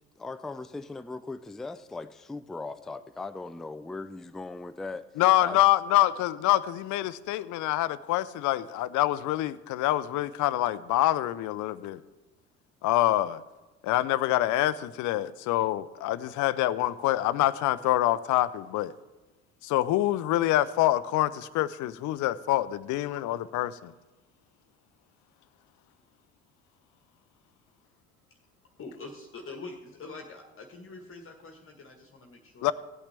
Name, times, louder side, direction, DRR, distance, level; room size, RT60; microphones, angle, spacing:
voice 1, 0.0-5.1 5.4-5.6, left 3 dB, ahead, 0.3 m, -39 dB
voice 2, 5.2-12.0 12.8-13.4 13.8-18.9 19.6-23.9 32.6-32.7, left 15 dB, 55° left, 0.6 m, -26 dB
voice 3, 28.8-32.7, left 3 dB, 35° left, 1.4 m, -44 dB
16.0 x 8.7 x 3.4 m
hypercardioid pair, 60°, 36 cm